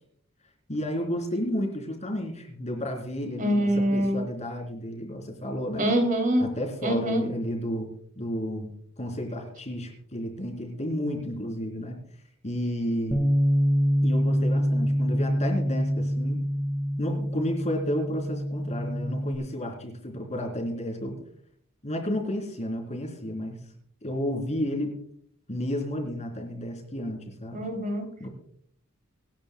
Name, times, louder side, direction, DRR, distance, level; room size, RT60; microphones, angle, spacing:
voice 1, 0.7-5.9 6.4-12.0 12.4-13.2 14.0-16.4 17.0-21.2 21.8-23.6 24.0-24.9 25.5-27.6 28.2-28.3, equal, 35° left, 2 dB, 3.6 m, -32 dB
voice 2, 3.4-4.2 5.8-6.5 6.8-7.2 27.5-28.1, equal, 40° right, 4 dB, 2.9 m, -24 dB
Bass guitar, 13.1-19.4, equal, ahead, 1.4 m, -25 dB
26.0 x 10.5 x 2.3 m, 0.66 s
head